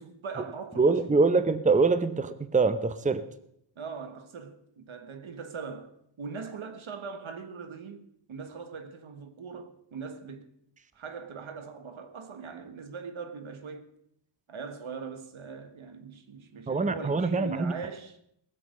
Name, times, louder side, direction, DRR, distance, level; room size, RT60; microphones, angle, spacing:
voice 1, 0.0-1.2 3.7-10.5 10.9-13.9 14.5-18.2, right 5 dB, 75° right, 1.5 m, -41 dB
voice 2, 0.8-3.2 16.7-17.7, right 4 dB, 15° right, 0.7 m, -24 dB
19.0 x 7.6 x 6.4 m
wide cardioid pair, 90°, 48 cm